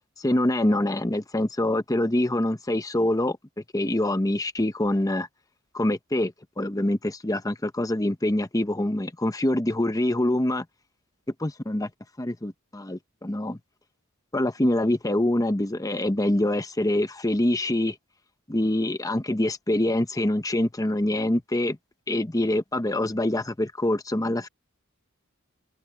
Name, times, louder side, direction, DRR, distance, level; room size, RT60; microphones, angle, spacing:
voice 1, 0.2-3.4 3.7-5.3 5.7-10.6 11.4-11.9 12.2-13.6 14.3-18.0 18.5-21.8 22.1-24.5, left 1 dB, 15° left, 0.9 m, -25 dB
open air
head